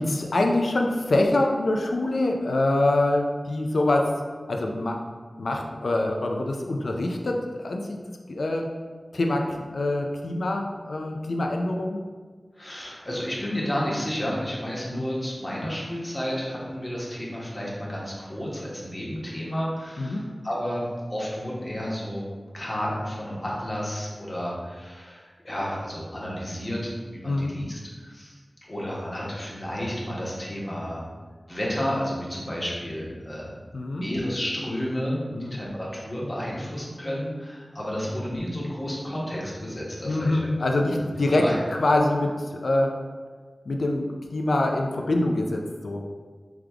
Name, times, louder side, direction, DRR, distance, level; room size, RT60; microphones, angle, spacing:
voice 1, 0.0-4.1 4.5-5.0 5.4-7.8 8.3-8.7 9.1-12.0 14.9-15.0 20.0-20.2 27.2-27.5 33.7-34.0 35.3-35.6 38.0-38.2 40.0-41.4 41.8-42.9 43.7-46.0, left 2 dB, 85° left, 2 dB, 0.4 m, -25 dB
voice 2, 12.5-20.8 21.1-22.2 22.5-28.4 28.7-31.0 31.5-33.5 33.9-40.5 41.3-41.6, equal, 35° left, -5 dB, 1.1 m, -31 dB
3.5 x 3.5 x 3.4 m, 1.5 s
wide cardioid pair, 55°, 0 cm